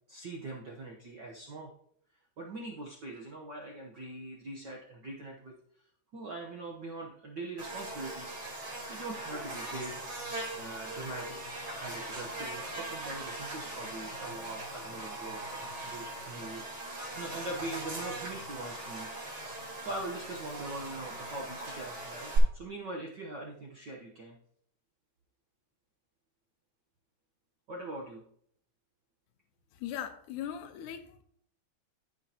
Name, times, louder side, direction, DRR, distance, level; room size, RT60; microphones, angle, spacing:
voice 1, 0.1-1.7 2.4-5.5 6.1-8.3 8.9-10.2 10.6-11.4 11.7-19.1 19.5-24.4 27.7-28.2, right 2 dB, 65° right, 1.0 m, -42 dB
Buzz, 7.6-22.4, right 2 dB, 50° right, 4.3 m, -40 dB
voice 2, 29.7-31.2, left 10 dB, 85° left, 2.3 m, -39 dB
15.0 x 5.8 x 2.9 m
omnidirectional pair, 3.5 m